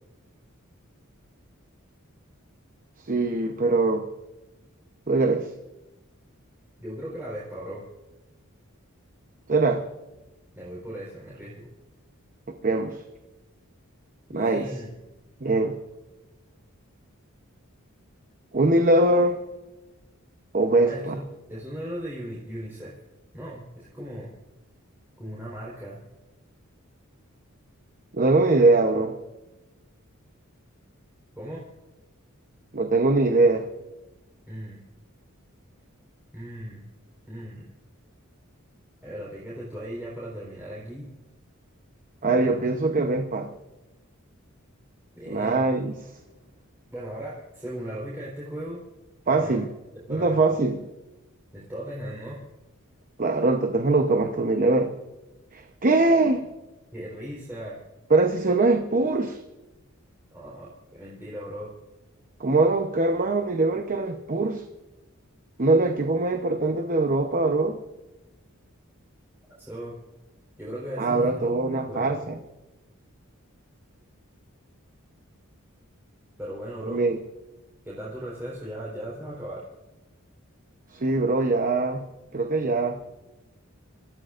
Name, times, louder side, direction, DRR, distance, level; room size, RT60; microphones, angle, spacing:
voice 1, 3.1-4.0 5.1-5.5 9.5-9.8 12.6-13.0 14.3-14.7 15.4-15.8 18.5-19.4 20.5-21.2 28.1-29.1 32.7-33.7 42.2-43.5 45.3-45.9 49.3-49.7 50.1-50.8 53.2-54.9 55.5-56.4 58.1-59.4 62.4-64.6 65.6-67.8 71.0-72.4 76.9-77.2 80.9-82.0 82.3-83.0, right 2 dB, 40° right, 6 dB, 0.9 m, -22 dB
voice 2, 6.8-7.8 10.5-11.7 14.3-14.9 20.8-21.2 21.5-23.0 23.3-24.3 25.2-26.0 31.4-31.7 34.5-34.8 36.3-36.9 37.3-37.6 39.0-41.1 45.2-45.7 46.9-48.8 49.3-49.6 50.1-50.4 51.5-52.4 56.9-57.8 60.3-61.7 69.6-70.0 70.6-72.2 76.4-77.0 77.8-79.6, equal, 10° right, -6 dB, 4.3 m, -37 dB
27.5 x 14.5 x 2.6 m, 1.0 s
head